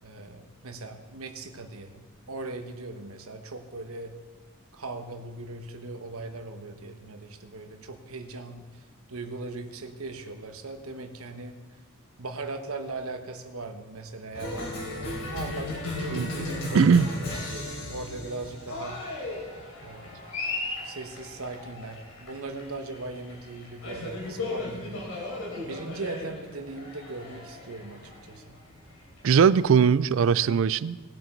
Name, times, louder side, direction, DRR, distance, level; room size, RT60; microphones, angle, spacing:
voice 1, 0.0-4.1 4.7-11.8 12.2-14.8 15.3-17.0 17.3-19.0 19.8-20.2 20.8-25.4 25.6-28.6, right 3 dB, 85° right, 6 dB, 1.2 m, -39 dB
Cheering, 14.3-29.5, left 2 dB, 70° left, 3.6 m, -36 dB
voice 2, 16.7-17.1 29.2-31.2, right 6 dB, 70° right, 18 dB, 0.4 m, -20 dB
19.0 x 7.8 x 4.6 m, 1.3 s
head